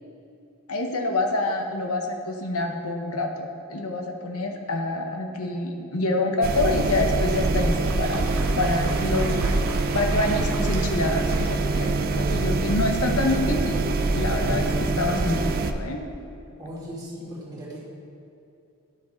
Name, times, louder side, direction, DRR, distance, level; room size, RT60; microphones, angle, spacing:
voice 1, 0.7-8.3 8.6-9.6 9.9-14.7 15.0-16.0, left 2 dB, 85° left, 3 dB, 1.0 m, -26 dB
sound 1, 6.4-15.7, right 3 dB, 45° right, 0.4 m, -24 dB
Applause, 7.4-12.3, right 3 dB, 85° right, 1.1 m, -39 dB
voice 2, 12.2-12.6 14.3-14.7 16.6-17.8, right 1 dB, 20° right, -7 dB, 2.2 m, -36 dB
10.0 x 6.3 x 4.3 m, 2.8 s
head